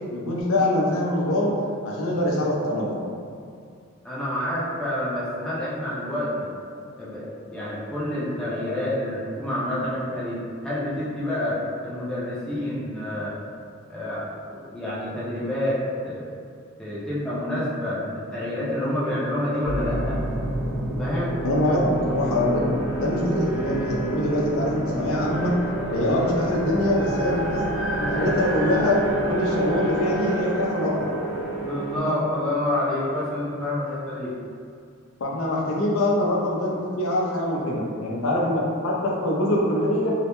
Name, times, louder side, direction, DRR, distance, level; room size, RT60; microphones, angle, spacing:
voice 1, 0.1-1.5 1.8-2.9 21.4-21.8 22.1-22.6 23.0-25.5 25.9-27.7 28.0-29.0 29.3-31.2 32.0-32.1 35.2-40.1, left 1 dB, 80° left, -3 dB, 0.4 m, -24 dB
voice 2, 4.0-6.5 7.0-13.4 13.9-16.3 16.8-20.2 21.0-21.4 21.6-21.8 31.6-34.3, left 1 dB, 5° left, -10 dB, 0.4 m, -28 dB
sound 1, 19.6-32.0, right 1 dB, 70° right, 0.7 m, -28 dB
2.2 x 2.0 x 2.9 m, 2.3 s
head